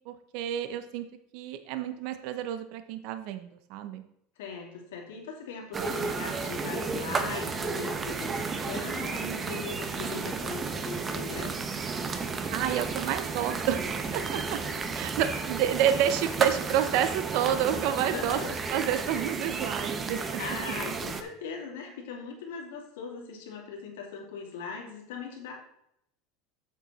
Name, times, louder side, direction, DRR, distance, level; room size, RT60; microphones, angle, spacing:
voice 1, 0.1-1.1 1.3-4.0 12.5-14.6 14.9-18.4 18.7-20.6, right 10 dB, 65° right, 10 dB, 0.8 m, -29 dB
voice 2, 4.4-11.7 18.1-18.5 20.4-25.5, left 5 dB, 90° left, 1 dB, 2.6 m, -39 dB
sound 1, 5.7-21.2, right 4 dB, 25° right, 1.0 m, -33 dB
7.7 x 7.7 x 4.1 m, 0.74 s
supercardioid pair, 125°, 0 cm